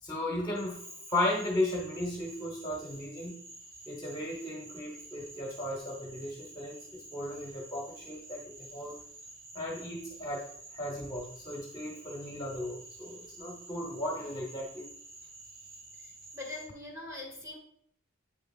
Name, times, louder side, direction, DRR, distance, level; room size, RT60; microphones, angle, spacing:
voice 1, 0.0-3.4 3.9-9.0 9.5-10.5 10.7-14.9, left 1 dB, 20° left, -1 dB, 1.0 m, -35 dB
Cricket / Frog, 0.5-16.7, right 2 dB, 85° right, 1.8 m, -50 dB
voice 2, 15.9-17.6, left 2 dB, 15° right, -1 dB, 1.8 m, -43 dB
8.3 x 6.1 x 2.4 m, 0.65 s
head